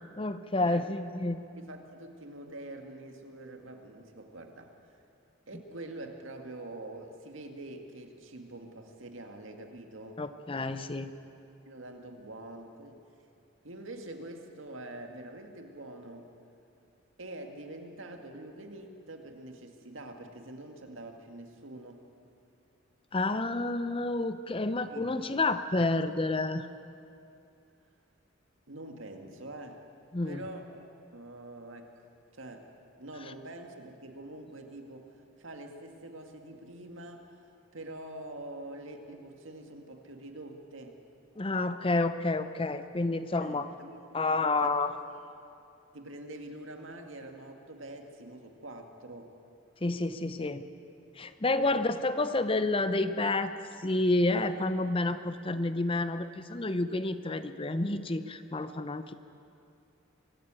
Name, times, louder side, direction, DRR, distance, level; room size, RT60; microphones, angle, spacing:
voice 1, 0.2-1.4 10.2-11.1 23.1-26.7 30.1-30.5 41.4-43.7 44.1-44.9 49.8-50.7 51.2-59.1, left 2 dB, 25° left, 11 dB, 0.7 m, -29 dB
voice 2, 1.5-5.0 5.5-10.2 11.7-13.0 13.6-16.3 17.2-22.0 24.9-25.3 28.7-29.8 30.2-32.0 32.3-32.7 33.0-41.0 43.4-44.0 44.3-44.8 45.9-49.3 51.6-51.7, right 1 dB, 85° right, 4 dB, 2.0 m, -45 dB
23.5 x 13.0 x 8.9 m, 2.6 s
head